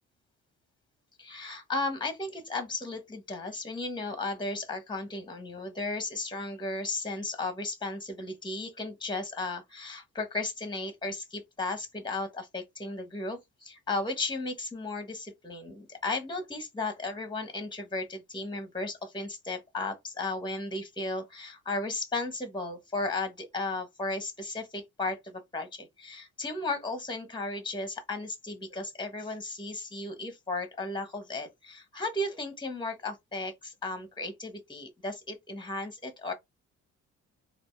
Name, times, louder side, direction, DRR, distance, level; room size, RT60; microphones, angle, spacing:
voice 1, 1.2-36.3, left 2 dB, 15° left, 1.2 m, -35 dB
4.0 x 2.6 x 3.3 m
cardioid pair, 90°, 30 cm